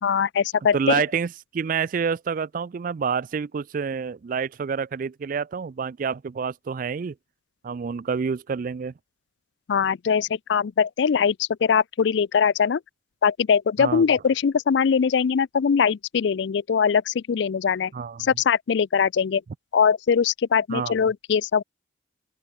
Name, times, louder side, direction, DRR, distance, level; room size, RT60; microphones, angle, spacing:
voice 1, 0.0-1.0 9.7-12.8 13.2-17.9 18.2-19.4 19.7-21.6, left 6 dB, 60° left, 0.4 m, -21 dB
voice 2, 0.7-7.1 7.6-8.9 13.8-14.0 17.9-18.3 20.7-20.9, right 6 dB, 45° right, 0.3 m, -28 dB
open air
head